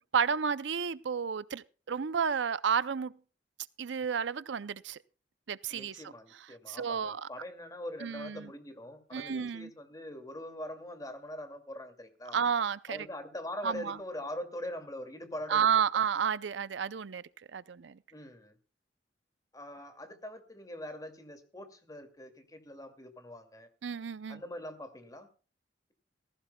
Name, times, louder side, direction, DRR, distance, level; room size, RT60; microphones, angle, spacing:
voice 1, 0.1-3.1 3.8-5.0 5.5-6.0 6.7-7.3 8.0-8.5 9.1-9.7 12.3-13.0 13.6-14.0 15.5-17.2 17.5-18.0 23.8-24.4, right 7 dB, 75° right, 0.5 m, -31 dB
voice 2, 5.7-12.4 12.9-15.7 18.1-18.5 19.5-23.7 24.3-25.3, left 1 dB, 20° left, 2.4 m, -43 dB
19.0 x 15.5 x 2.3 m
head